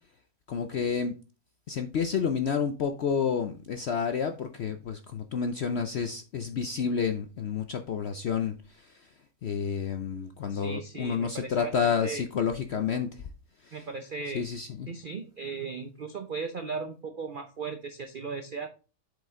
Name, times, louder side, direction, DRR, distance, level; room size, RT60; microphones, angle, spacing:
voice 1, 0.5-1.1 1.7-8.5 9.4-13.1 14.3-14.9, left 6 dB, 70° left, 7 dB, 0.6 m, -29 dB
voice 2, 10.5-12.2 13.7-14.5 14.9-18.7, right 4 dB, 85° right, 7 dB, 0.4 m, -37 dB
7.7 x 5.0 x 3.6 m, 0.34 s
omnidirectional pair, 1.8 m